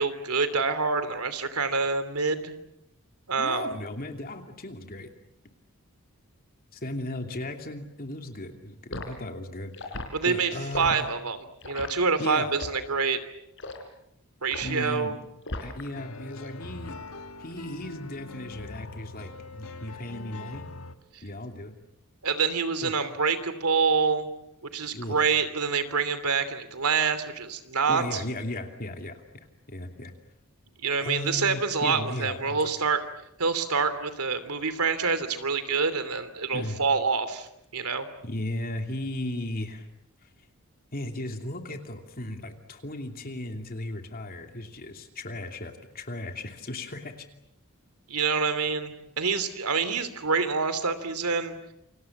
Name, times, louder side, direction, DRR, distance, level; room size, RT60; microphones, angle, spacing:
voice 1, 0.0-2.5 3.3-3.7 10.1-11.4 11.6-13.2 14.4-15.2 21.1-21.2 22.2-24.3 24.7-28.2 30.8-33.0 33.4-37.5 37.7-38.1 48.1-51.5, right 5 dB, 90° right, 11 dB, 3.0 m, -26 dB
voice 2, 3.4-5.1 6.7-11.1 12.2-12.5 14.6-15.2 15.6-17.0 17.4-20.7 21.2-21.8 22.8-22.9 24.9-25.2 27.9-29.2 29.7-30.1 31.0-32.6 36.5-36.8 38.2-39.9 40.9-47.1, left 1 dB, 40° left, 4 dB, 2.8 m, -36 dB
Liquid, 8.9-9.1 9.7-10.1 10.7-11.0 11.6-11.9 12.5-12.8 13.6-13.8 14.5-14.8 15.5-15.9 16.2-16.5, left 2 dB, 60° left, 4.2 m, -36 dB
sound 1, 15.9-21.0, left 2 dB, 75° left, 1.7 m, -42 dB
29.0 x 25.5 x 7.3 m, 0.82 s
head